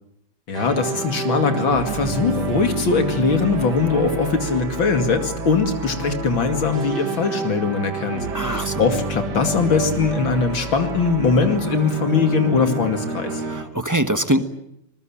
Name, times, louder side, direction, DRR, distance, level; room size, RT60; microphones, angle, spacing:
voice 1, 0.5-13.4, left 4 dB, 85° left, 7 dB, 3.2 m, -21 dB
sound 1, 0.5-13.6, right 4 dB, 60° right, 2.6 m, -29 dB
voice 2, 8.3-8.8 13.5-14.4, right 1 dB, 10° right, 9 dB, 1.0 m, -22 dB
26.5 x 20.5 x 8.8 m, 0.78 s
omnidirectional pair, 2.1 m